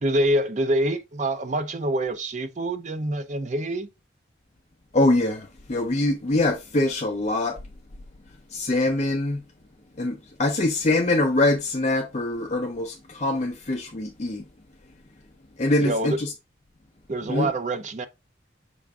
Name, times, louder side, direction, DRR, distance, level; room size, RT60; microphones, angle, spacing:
voice 1, 0.0-3.9 15.8-16.2 17.1-18.1, right 1 dB, 40° right, 0.5 m, -26 dB
voice 2, 4.9-7.6 8.5-9.4 10.0-14.4 15.6-16.3 17.3-17.5, left 2 dB, 35° left, 0.5 m, -24 dB
6.0 x 2.5 x 3.4 m
head